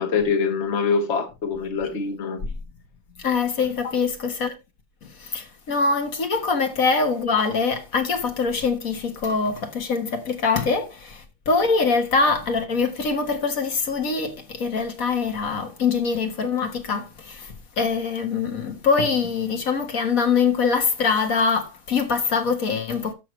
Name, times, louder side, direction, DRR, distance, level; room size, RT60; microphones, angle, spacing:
voice 1, 0.0-2.4 3.8-3.9, left 5 dB, 50° left, 1.6 m, -24 dB
voice 2, 3.2-4.5 5.0-23.1, left 5 dB, 65° left, 1.8 m, -23 dB
13.0 x 6.8 x 3.1 m
omnidirectional pair, 1.6 m